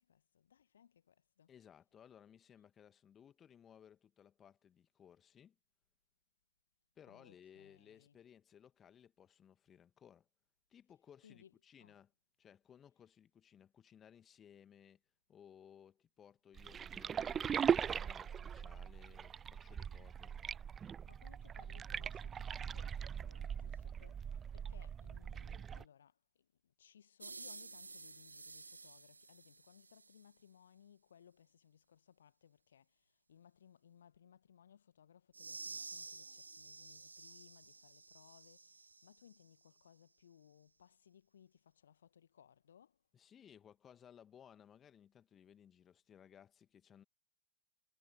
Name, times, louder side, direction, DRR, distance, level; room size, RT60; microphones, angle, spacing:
voice 1, 0.0-1.8 7.0-8.2 10.9-12.0 12.9-13.1 19.8-20.1 21.1-43.1, left 8 dB, 65° left, 1.7 m, -65 dB
voice 2, 1.5-5.6 7.0-10.3 10.7-12.1 12.4-15.0 15.3-20.3 43.1-47.0, left 8 dB, 25° left, 2.0 m, -61 dB
sound 1, 16.6-25.8, right 8 dB, 20° right, 0.3 m, -40 dB
sound 2, 27.2-30.3 35.3-39.4, right 3 dB, 80° right, 0.6 m, -51 dB
figure-of-eight pair, 90°, 0 cm